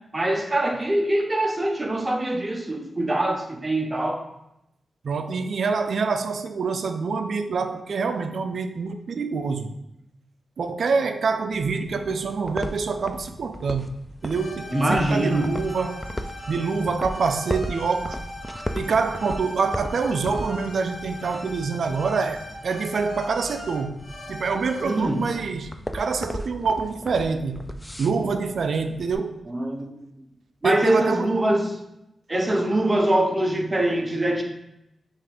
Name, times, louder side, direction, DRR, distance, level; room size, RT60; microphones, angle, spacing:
voice 1, 0.1-4.2 14.7-15.5 24.8-25.2 29.5-30.1 30.6-31.7 32.3-34.4, right 1 dB, 20° right, 3 dB, 0.7 m, -23 dB
voice 2, 5.0-9.7 10.6-13.9 14.2-16.0 16.5-18.2 18.7-24.0 24.3-27.6 28.0-29.4 30.6-31.3, right 4 dB, 65° right, 8 dB, 0.4 m, -26 dB
sound 1, 11.5-29.2, equal, 10° left, 0.3 m, -37 dB
sound 2, 14.2-25.3, left 1 dB, 25° left, 1.3 m, -40 dB
5.5 x 2.5 x 3.4 m, 0.86 s
wide cardioid pair, 95°, 0 cm